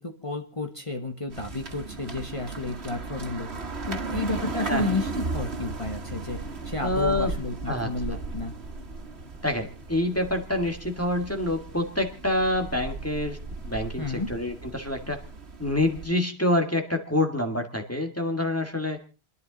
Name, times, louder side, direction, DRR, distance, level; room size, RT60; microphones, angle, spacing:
voice 1, 0.0-3.5 3.9-8.5 14.0-14.3, left 3 dB, 30° left, 4 dB, 1.4 m, -32 dB
sound 1, 1.3-16.1, right 3 dB, 80° right, 1.8 m, -36 dB
voice 2, 6.8-7.3 7.7-7.9 9.4-13.4 13.6-15.2 15.6-19.0, left 1 dB, 15° left, 3 dB, 1.8 m, -27 dB
30.0 x 10.5 x 3.9 m, 0.35 s
omnidirectional pair, 1.1 m